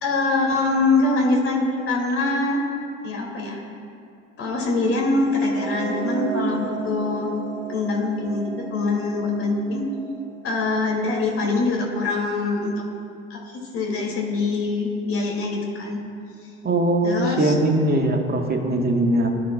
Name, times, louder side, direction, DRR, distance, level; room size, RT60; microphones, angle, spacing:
voice 1, 0.0-2.6 3.0-3.6 4.4-7.3 7.7-9.8 10.4-12.8 13.3-16.0 17.0-17.5, left 3 dB, 35° left, -2 dB, 3.0 m, -24 dB
sound 1, 5.3-11.5, right 6 dB, 50° right, 0.8 m, -33 dB
voice 2, 16.6-19.3, right 1 dB, 25° right, 2 dB, 1.7 m, -21 dB
22.5 x 10.5 x 2.6 m, 2.5 s
figure-of-eight pair, 65°, 38 cm